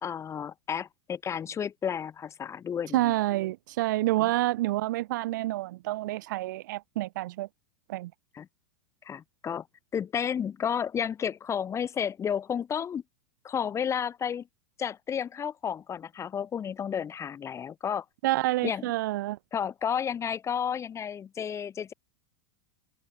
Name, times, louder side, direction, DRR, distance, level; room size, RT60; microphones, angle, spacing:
voice 1, 0.0-3.1 4.2-4.3 8.3-8.5 9.0-9.7 9.9-13.0 13.4-14.5 14.8-18.1 18.6-18.9 19.5-21.9, left 8 dB, 25° left, 3.6 m, -32 dB
voice 2, 2.9-7.5 7.9-8.1 18.2-19.4, right 17 dB, 60° right, 1.1 m, -28 dB
figure-of-eight pair, 90°, 12 cm